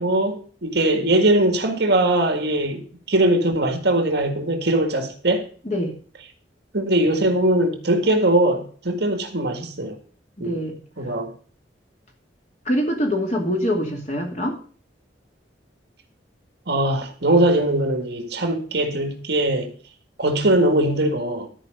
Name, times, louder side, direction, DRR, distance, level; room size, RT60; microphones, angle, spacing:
voice 1, 0.0-5.5 6.7-10.0 10.4-10.6 11.0-11.3 16.7-19.7 20.2-21.5, right 1 dB, 60° right, 1.8 m, -21 dB
voice 2, 10.4-10.8 12.6-14.6, equal, 40° left, 2.5 m, -24 dB
13.0 x 5.0 x 6.5 m
head